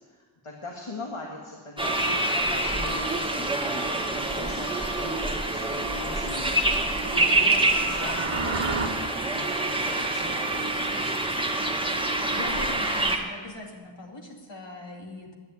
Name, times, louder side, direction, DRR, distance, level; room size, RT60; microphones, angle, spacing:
voice 1, 0.4-4.7 5.0-8.9 9.2-11.7, left 2 dB, 85° left, -1 dB, 2.0 m, -40 dB
sound 1, 1.8-13.2, right 2 dB, 10° right, 1.9 m, -26 dB
sound 2, 7.5-8.9, right 4 dB, 80° right, 1.3 m, -31 dB
voice 2, 12.3-15.3, left 2 dB, 60° left, -1 dB, 2.8 m, -40 dB
11.0 x 10.5 x 9.4 m, 1.5 s
wide cardioid pair, 60°, 49 cm